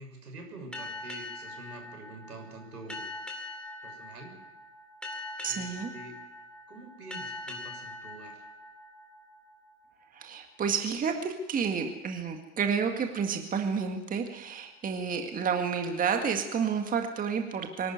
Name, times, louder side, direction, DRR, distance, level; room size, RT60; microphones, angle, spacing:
voice 1, 0.0-3.0 3.8-4.4 5.4-6.2 6.7-8.4, right 2 dB, 85° right, 3 dB, 6.8 m, -46 dB
sound 1, 0.7-9.9, left 2 dB, ahead, 2.8 m, -42 dB
voice 2, 5.4-5.9 10.1-17.9, right 6 dB, 20° right, 5 dB, 1.9 m, -30 dB
23.5 x 12.5 x 9.5 m, 1.0 s
hypercardioid pair, 105°, 46 cm